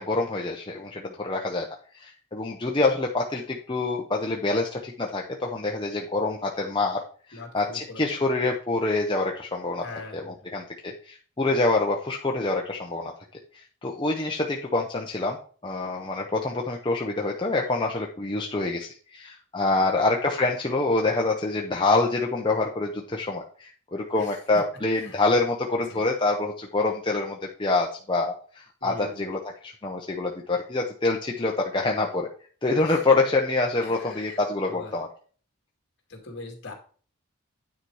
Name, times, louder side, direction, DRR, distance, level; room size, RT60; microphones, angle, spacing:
voice 1, 0.0-1.7 1.9-7.0 7.3-9.8 10.1-13.1 13.8-15.4 15.6-32.3 32.6-35.1, left 2 dB, 20° left, 0 dB, 0.7 m, -26 dB
voice 2, 7.3-8.2 9.8-10.6 19.8-20.0 24.2-24.6 25.0-25.2 25.9-26.1 28.8-29.3 32.8-33.0 33.8-35.0 36.1-36.7, left 2 dB, 55° left, 2 dB, 2.3 m, -42 dB
9.6 x 4.3 x 4.7 m, 0.43 s
head